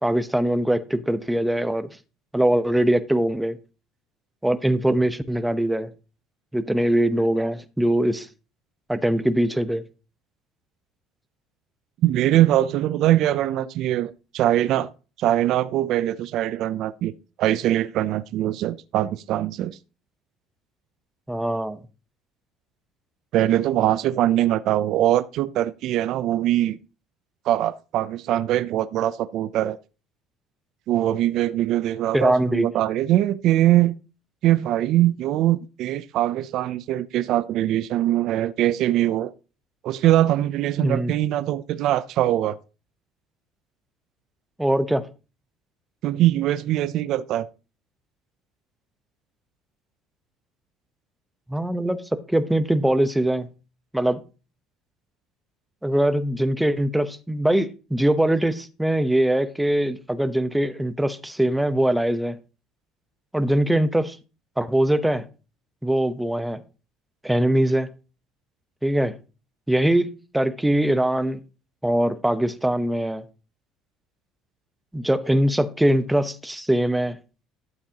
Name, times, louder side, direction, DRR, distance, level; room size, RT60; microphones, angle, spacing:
voice 1, 0.0-1.9 2.3-3.6 4.4-5.9 6.5-8.3 8.9-9.8 21.3-21.8 32.1-32.7 40.8-41.1 44.6-45.0 51.5-53.5 53.9-54.2 55.8-62.4 63.3-64.2 64.6-65.2 65.8-66.6 67.2-67.9 68.8-69.1 69.7-71.4 71.8-73.2 74.9-77.2, right 1 dB, 5° right, 0.8 m, -22 dB
voice 2, 12.0-14.9 15.2-17.1 17.4-19.8 23.3-26.8 27.5-29.8 30.9-33.9 34.4-39.3 39.8-42.6 46.0-47.5, right 13 dB, 60° right, 0.5 m, -22 dB
12.5 x 7.4 x 2.9 m
cardioid pair, 115°, 0 cm